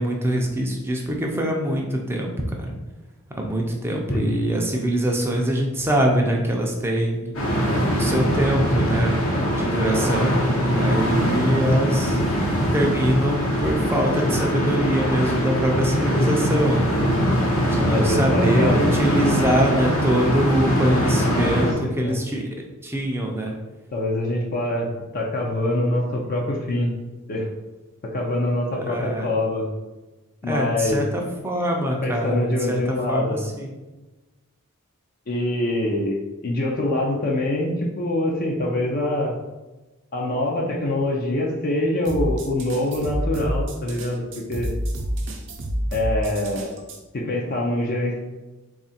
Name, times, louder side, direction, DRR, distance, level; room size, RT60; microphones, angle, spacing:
voice 1, 0.0-2.8 3.4-7.3 7.9-12.2 12.7-17.0 17.7-21.7 22.0-22.5 22.8-23.5 28.9-29.3 30.4-32.8 33.1-33.7, equal, 10° right, 1 dB, 0.5 m, -23 dB
sound 1, 7.3-21.7, equal, 60° left, 0.9 m, -22 dB
voice 2, 17.9-18.8 21.6-22.2 23.9-26.9 27.3-27.5 28.1-29.7 30.4-31.0 32.0-33.4 35.3-36.2 36.4-39.3 40.1-44.7 45.9-46.7 47.1-48.2, left 1 dB, 40° left, -1 dB, 0.5 m, -24 dB
sound 2, 42.0-47.0, equal, 55° right, 0.6 m, -28 dB
3.6 x 2.4 x 4.1 m, 1.1 s
head